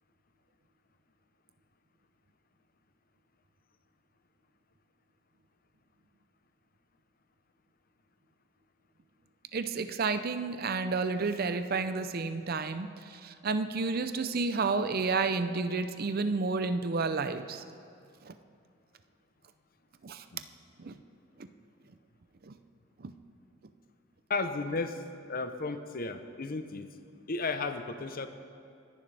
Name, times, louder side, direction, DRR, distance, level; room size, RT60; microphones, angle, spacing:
voice 1, 9.5-17.6 18.2-18.3 20.0-20.2 20.8-20.9 22.4-22.5 23.0-23.1, right 4 dB, 50° right, 10 dB, 0.5 m, -31 dB
voice 2, 24.3-25.0 25.3-26.9 27.3-28.3, left 3 dB, 45° left, 8 dB, 0.8 m, -34 dB
26.5 x 10.5 x 3.4 m, 2.4 s
head